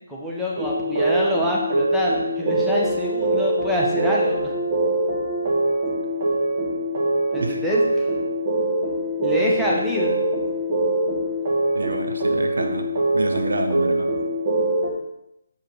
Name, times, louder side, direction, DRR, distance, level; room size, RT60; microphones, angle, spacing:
voice 1, 0.1-4.5 7.3-8.1 9.2-10.2, equal, 5° right, -5 dB, 1.0 m, -26 dB
sound 1, 0.5-14.9, right 1 dB, 30° right, 1.4 m, -23 dB
voice 2, 11.7-12.9 13.1-14.1, right 2 dB, 65° right, 5 dB, 1.0 m, -27 dB
7.8 x 4.8 x 4.6 m, 0.85 s
figure-of-eight pair, 150°, 0 cm